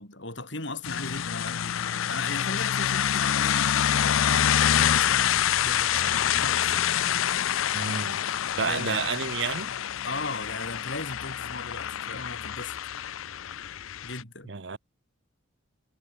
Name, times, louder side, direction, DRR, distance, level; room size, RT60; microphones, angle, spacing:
voice 1, 0.0-5.3 5.6-6.1 6.4-6.9 8.6-9.1 10.0-12.7 14.0-14.5, left 3 dB, 60° left, 7.5 m, -37 dB
sound 1, 0.8-14.2, left 9 dB, 80° left, 0.5 m, -26 dB
voice 2, 7.7-8.2 8.6-9.7 14.5-14.8, right 5 dB, 60° right, 0.8 m, -30 dB
head